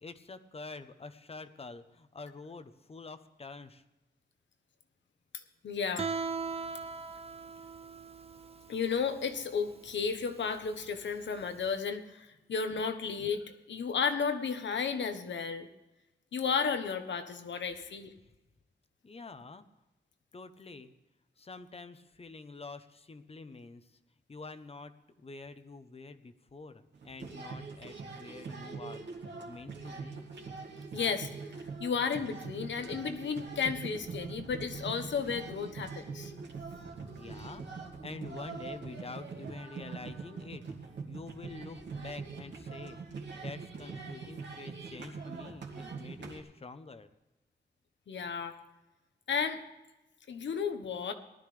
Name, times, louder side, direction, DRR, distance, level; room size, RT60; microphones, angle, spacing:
voice 1, 0.0-3.8 19.0-19.6 20.3-20.9 21.4-24.0 24.3-29.0 29.5-30.3 37.2-43.0 43.3-47.1, left 3 dB, 35° left, 10 dB, 0.9 m, -47 dB
voice 2, 5.6-6.1 8.7-15.7 16.3-18.1 30.9-31.3 31.8-36.3 48.1-48.6 49.3-49.6 50.3-51.1, left 6 dB, 85° left, 8 dB, 1.2 m, -33 dB
Guitar, 6.0-11.7, right 5 dB, 35° right, 0.7 m, -40 dB
sound 1, 26.9-46.4, right 4 dB, 75° right, 2.3 m, -43 dB
18.5 x 12.5 x 3.4 m, 1.0 s
wide cardioid pair, 125°, 19 cm